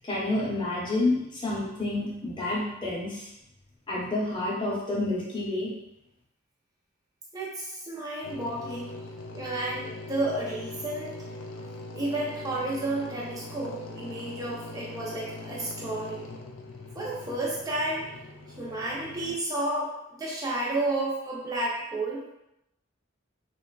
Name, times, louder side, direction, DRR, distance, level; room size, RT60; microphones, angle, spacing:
voice 1, 0.0-3.3 3.9-5.7, left 2 dB, 20° left, -6 dB, 0.7 m, -29 dB
voice 2, 7.3-8.9 9.3-11.2 11.9-16.2 16.9-18.0 18.6-22.2, right 2 dB, 20° right, -5 dB, 0.6 m, -31 dB
sound 1, 8.2-19.4, left 2 dB, 85° left, 0.4 m, -42 dB
3.1 x 2.2 x 2.3 m, 0.86 s
head